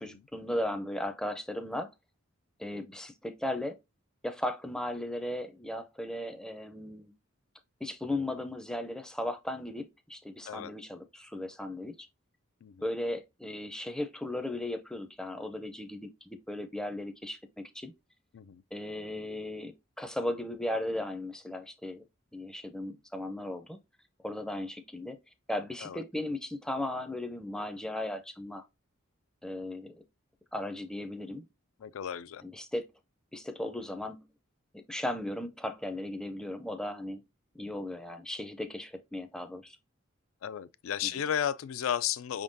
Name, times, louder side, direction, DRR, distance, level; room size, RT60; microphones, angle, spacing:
voice 1, 0.0-1.9 2.6-3.8 4.2-7.1 7.8-12.1 12.8-17.9 18.7-22.0 22.3-23.8 24.2-25.2 25.5-28.6 29.4-30.0 30.5-31.5 32.4-32.9 33.3-34.3 34.7-37.2 37.5-39.8 41.1-41.2, left 1 dB, 5° left, 0.4 m, -36 dB
voice 2, 31.8-32.4 40.4-42.4, left 9 dB, 80° left, 0.4 m, -34 dB
5.3 x 3.6 x 2.6 m
head